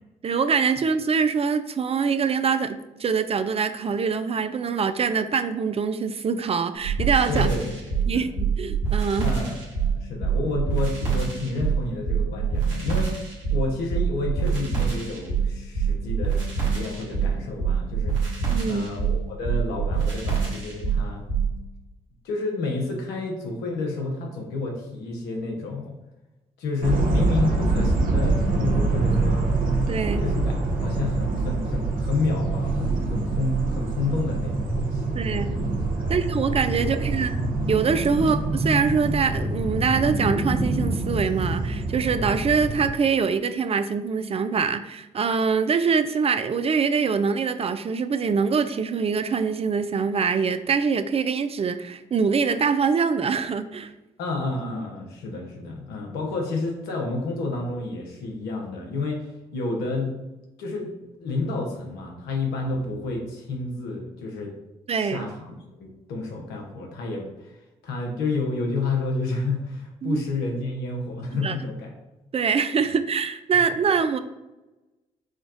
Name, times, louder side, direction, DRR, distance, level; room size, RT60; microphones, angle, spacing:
voice 1, 0.2-7.5 8.1-9.3 18.5-18.9 29.9-30.3 35.1-35.5 36.1-37.3 37.7-53.9 64.9-65.3 70.0-70.2 71.3-71.6 72.3-74.2, right 5 dB, 35° right, 10 dB, 0.4 m, -24 dB
sound 1, 6.8-21.5, right 6 dB, 90° right, 1.3 m, -25 dB
voice 2, 7.3-8.3 9.2-18.4 18.7-21.2 22.2-26.0 26.6-29.4 30.2-30.6 30.8-35.2 36.0-36.2 36.8-37.0 38.1-38.2 54.2-60.1 60.6-64.5 64.9-71.9 72.8-72.9, left 3 dB, 80° left, 1 dB, 1.0 m, -30 dB
sound 2, 26.8-42.9, right 2 dB, 55° right, 0.9 m, -25 dB
5.0 x 2.3 x 3.9 m, 1.0 s
hypercardioid pair, 45°, 17 cm